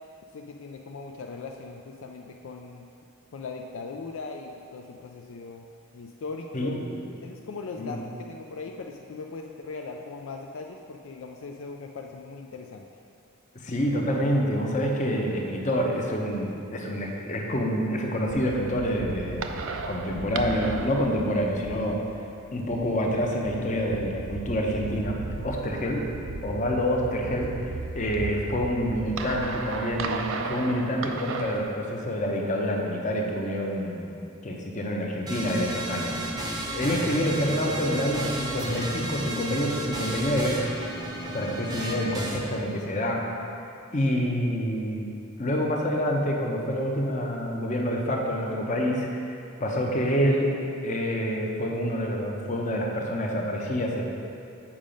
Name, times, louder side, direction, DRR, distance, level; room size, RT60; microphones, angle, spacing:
voice 1, 0.3-2.9 3.3-5.7 5.9-6.9 7.2-12.9, left 4 dB, 65° left, 2 dB, 0.4 m, -39 dB
voice 2, 6.5-7.0 7.8-8.0 13.5-22.0 22.5-26.1 26.4-34.1 34.4-36.5 36.7-40.6 41.3-43.2 43.9-45.1 45.4-50.5 50.8-54.0, equal, 35° left, 0 dB, 0.8 m, -27 dB
sound 1, 18.3-31.7, right 4 dB, 65° right, 0.4 m, -36 dB
sound 2, 35.3-42.4, right 1 dB, 20° right, 0.7 m, -33 dB
7.3 x 5.1 x 5.1 m, 2.5 s
head